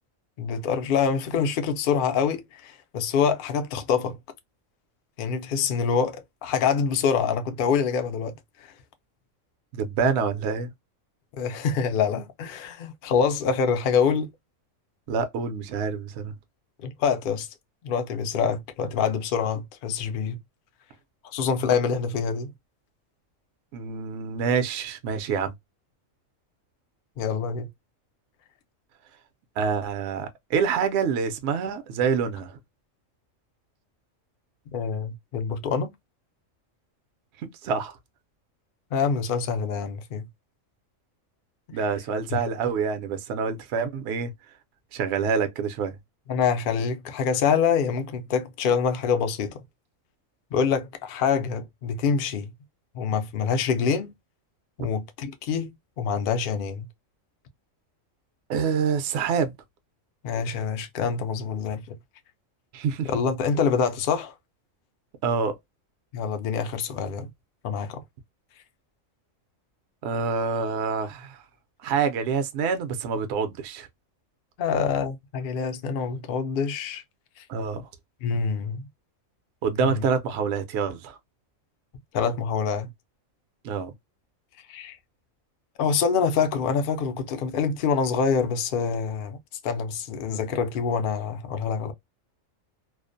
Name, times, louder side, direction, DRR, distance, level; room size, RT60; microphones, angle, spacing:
voice 1, 0.4-4.2 5.2-8.4 8.6-8.7 11.4-14.3 16.8-17.5 17.8-20.4 21.2-22.5 27.2-27.7 34.7-35.9 38.9-40.3 42.3-42.4 46.3-49.6 50.5-52.5 52.9-54.1 54.8-56.9 60.2-62.0 63.1-64.3 66.1-67.3 67.6-68.0 74.6-77.0 77.4-77.5 78.2-78.9 79.8-80.0 82.1-82.9 84.7-85.0 85.8-89.4 89.6-91.9, left 6 dB, 60° left, 0.5 m, -26 dB
voice 2, 9.7-10.7 15.1-16.3 23.7-25.5 29.6-32.6 37.6-38.0 41.7-44.3 44.9-45.9 54.8-54.9 58.5-59.5 62.7-63.1 65.2-65.6 70.0-71.4 71.8-73.9 77.5-77.8 79.6-81.2 83.6-83.9, right 6 dB, 65° right, 0.8 m, -26 dB
2.4 x 2.0 x 2.5 m
omnidirectional pair, 1.4 m